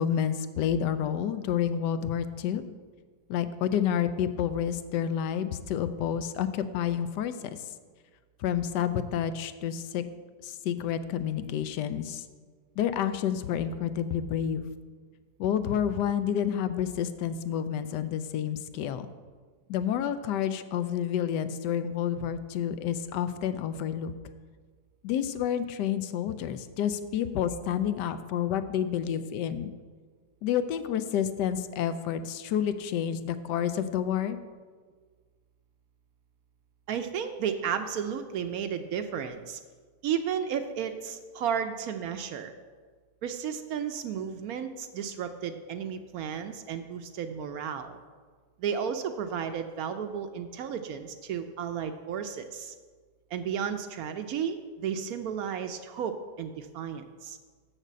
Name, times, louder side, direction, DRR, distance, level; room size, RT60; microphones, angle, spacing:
voice 1, 0.0-2.6 3.3-7.3 8.4-10.0 10.4-12.2 12.8-14.7 15.4-19.1 19.7-24.1 25.0-29.7 30.4-34.4, left 9 dB, 85° left, 11 dB, 1.2 m, -29 dB
voice 2, 36.9-39.6 40.0-42.5 43.2-48.0 48.6-52.7 53.3-57.4, right 8 dB, 70° right, 8 dB, 0.9 m, -33 dB
6.6 x 6.5 x 7.4 m, 1.5 s
omnidirectional pair, 1.8 m